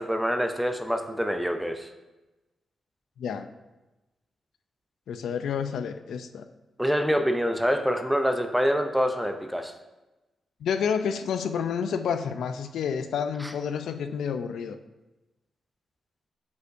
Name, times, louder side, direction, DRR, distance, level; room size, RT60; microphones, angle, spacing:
voice 1, 0.0-1.9 6.8-9.7, equal, ahead, 6 dB, 0.4 m, -26 dB
voice 2, 3.2-3.5 5.1-6.4 10.6-14.8, left 7 dB, 85° left, 9 dB, 0.4 m, -29 dB
7.9 x 5.4 x 2.6 m, 1.1 s
wide cardioid pair, 155°, 0 cm